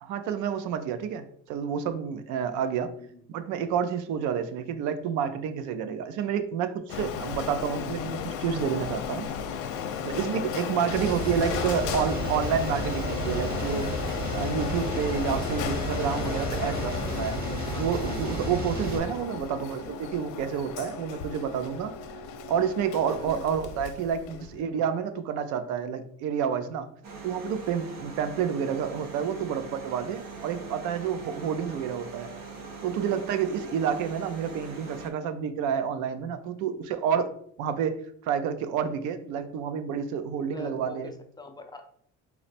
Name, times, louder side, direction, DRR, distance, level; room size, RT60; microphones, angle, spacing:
voice 1, 0.0-2.9 3.3-9.3 10.0-13.9 14.3-17.5 17.7-21.9 22.5-26.9 27.2-32.3 32.8-37.3 37.6-41.1, right 7 dB, 75° right, 10 dB, 0.5 m, -29 dB
Printer, 6.9-24.6, left 7 dB, 75° left, 0.6 m, -34 dB
sound 1, 10.9-19.0, right 2 dB, 30° right, 1.1 m, -33 dB
voice 2, 11.3-11.9 17.6-18.1 19.3-19.7 23.2-23.6 24.3-24.7 29.3-29.7 34.8-34.9 40.3-41.8, left 2 dB, 15° left, 5 dB, 0.4 m, -46 dB
sound 2, 27.0-35.1, right 4 dB, 60° right, 0.9 m, -42 dB
4.0 x 2.0 x 4.2 m, 0.63 s
cardioid pair, 115°, 31 cm